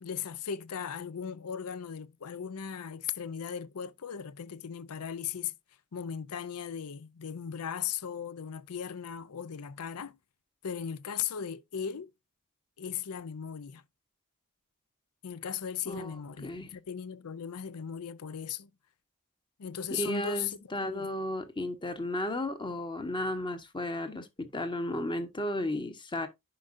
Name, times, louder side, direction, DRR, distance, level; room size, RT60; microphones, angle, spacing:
voice 1, 0.0-5.5 5.9-10.2 10.6-12.1 12.8-13.8 15.2-18.7 19.6-20.6 20.8-21.1, left 8 dB, 85° left, 0.6 m, -37 dB
voice 2, 16.4-16.7 19.9-26.3, left 1 dB, 20° left, 1.0 m, -34 dB
10.0 x 5.2 x 2.6 m
head